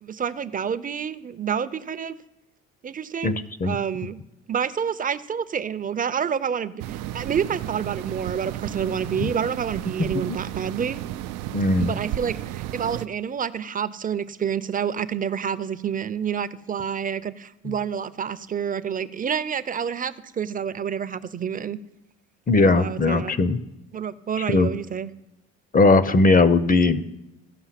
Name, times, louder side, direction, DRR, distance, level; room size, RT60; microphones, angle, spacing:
voice 1, 0.0-2.2 2.8-3.4 3.6-4.2 4.5-11.1 11.8-21.8 22.6-23.3 23.9-25.1, right 7 dB, 25° right, 14 dB, 0.5 m, -28 dB
voice 2, 3.2-3.8 9.2-9.3 10.3-10.4 11.5-11.9 17.7-17.8 22.5-23.6 24.5-24.7 25.7-27.0, left 3 dB, 25° left, 14 dB, 0.6 m, -19 dB
sound 1, 6.8-13.1, right 13 dB, 80° right, 0.5 m, -33 dB
15.0 x 5.5 x 5.8 m, 0.89 s
supercardioid pair, 90°, 32 cm